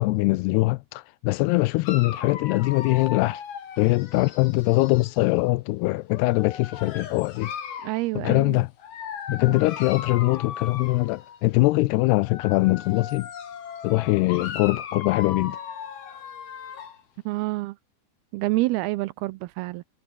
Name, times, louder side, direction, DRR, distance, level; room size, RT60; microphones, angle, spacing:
voice 1, 0.0-3.4 3.8-7.5 8.2-8.7 9.3-13.3 13.8-15.6, left 22 dB, 80° left, 2.5 m, -22 dB
Dog, 1.9-5.2 6.1-8.0 8.8-11.4 12.1-17.0, left 7 dB, 60° left, 5.0 m, -37 dB
voice 2, 7.8-8.6 9.5-9.6 17.3-17.8 18.3-19.8, right 20 dB, 80° right, 2.3 m, -27 dB
omnidirectional pair, 4.9 m